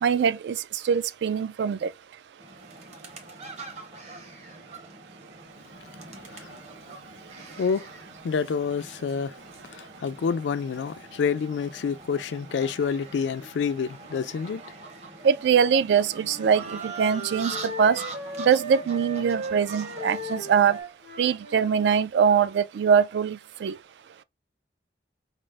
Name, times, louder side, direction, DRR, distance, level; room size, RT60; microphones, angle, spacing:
voice 1, 0.0-0.6 0.9-1.9 15.2-18.0 18.4-20.8 21.2-23.7, right 7 dB, 75° right, 0.3 m, -22 dB
sound 1, 2.4-20.8, right 3 dB, 40° right, 0.8 m, -43 dB
voice 2, 6.2-6.6 7.6-7.9 8.2-9.4 9.7-14.6 15.7-15.8, left 6 dB, 80° left, 0.3 m, -28 dB
Wind instrument woodwind instrument, 16.2-21.8, right 1 dB, 55° right, 1.1 m, -37 dB
5.0 x 2.0 x 3.2 m
head